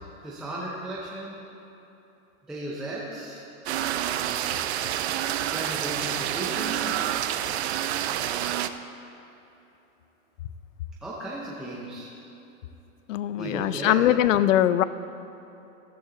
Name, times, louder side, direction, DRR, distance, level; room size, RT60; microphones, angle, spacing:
voice 1, 0.2-1.4 2.5-3.4 5.5-6.9 11.0-12.1 13.4-14.0, right 1 dB, ahead, -6 dB, 0.5 m, -35 dB
sound 1, 3.7-8.7, right 11 dB, 50° right, 0.5 m, -28 dB
voice 2, 13.1-14.8, left 12 dB, 60° left, 15 dB, 0.5 m, -21 dB
13.5 x 11.0 x 3.8 m, 3.0 s
hypercardioid pair, 150°, 43 cm